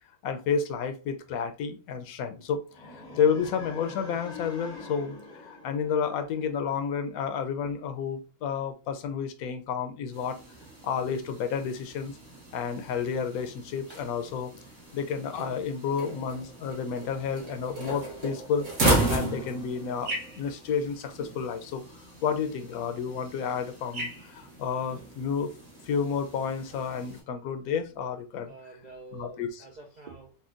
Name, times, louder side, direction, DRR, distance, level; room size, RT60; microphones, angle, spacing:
voice 1, 0.2-10.4 10.8-12.1 12.5-14.5 14.9-18.7 19.1-21.8 22.2-25.5 25.9-28.5 29.1-29.6, left 6 dB, 80° left, 8 dB, 1.0 m, -31 dB
sound 1, 2.7-6.8, left 3 dB, 45° left, 0.6 m, -44 dB
sound 2, 10.1-27.2, right 1 dB, 60° right, 1.5 m, -35 dB
voice 2, 28.4-30.3, right 3 dB, 85° right, 1 dB, 0.3 m, -47 dB
4.2 x 2.2 x 2.5 m, 0.32 s
omnidirectional pair, 1.5 m